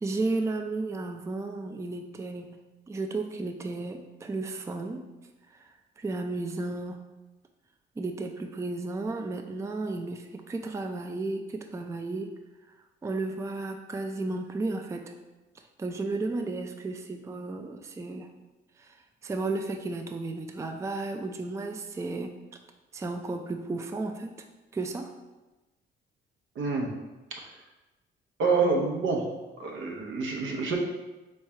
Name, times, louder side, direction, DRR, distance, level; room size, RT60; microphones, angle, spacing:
voice 1, 0.0-2.6 2.9-5.1 5.5-5.7 6.0-7.1 8.0-12.3 13.0-15.1 15.8-18.3 18.8-19.0 19.2-22.4 22.9-24.4 24.7-25.1, right 3 dB, 15° right, 5 dB, 0.4 m, -33 dB
voice 2, 26.6-26.9 28.4-29.2 29.6-30.8, right 4 dB, 75° right, 1 dB, 0.9 m, -27 dB
3.6 x 3.2 x 4.3 m, 1.1 s
cardioid pair, 90°, 20 cm